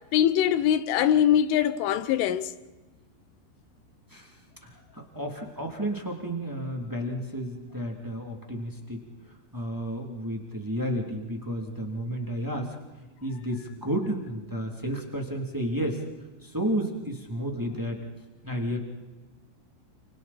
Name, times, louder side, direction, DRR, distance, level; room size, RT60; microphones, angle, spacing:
voice 1, 0.1-2.5, left 10 dB, 80° left, 3.5 m, -22 dB
voice 2, 4.1-9.0 9.5-12.7 13.2-16.0 16.4-18.0 18.4-18.8, equal, 5° right, 1.6 m, -32 dB
30.0 x 28.5 x 4.4 m
omnidirectional pair, 5.7 m